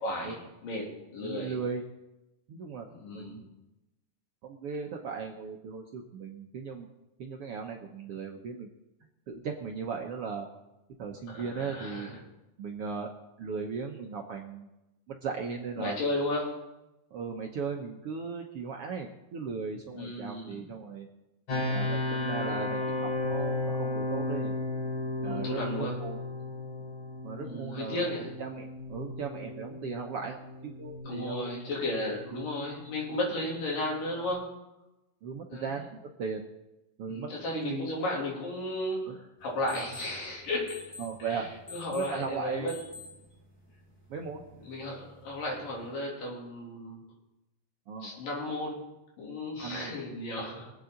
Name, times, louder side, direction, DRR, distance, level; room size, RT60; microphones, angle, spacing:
voice 1, 0.0-1.6 2.9-3.4 11.3-12.2 15.8-16.6 19.9-20.7 25.2-26.0 27.4-28.4 31.0-34.6 35.5-35.8 37.1-40.9 41.2-42.8 44.6-47.0 48.0-48.8 49.2-50.7, left 1 dB, 80° left, -2 dB, 4.8 m, -34 dB
voice 2, 1.2-1.8 2.5-2.9 3.1-3.4 4.4-6.9 7.2-8.7 9.3-10.5 11.0-12.1 12.6-13.1 13.4-14.7 15.1-16.0 17.1-21.1 21.7-24.5 25.2-26.2 27.2-28.0 28.4-31.8 32.3-32.5 35.2-36.5 37.0-37.9 39.1-39.2 41.0-41.5 41.9-42.7 44.1-44.4 47.9-48.1 49.6-50.0, right 5 dB, 65° right, 1 dB, 1.5 m, -37 dB
sound 1, 21.5-34.3, left 2 dB, 60° left, 5.2 m, -35 dB
sound 2, 39.4-45.9, left 3 dB, 5° left, 1.8 m, -50 dB
24.0 x 8.4 x 3.9 m, 0.96 s
omnidirectional pair, 3.8 m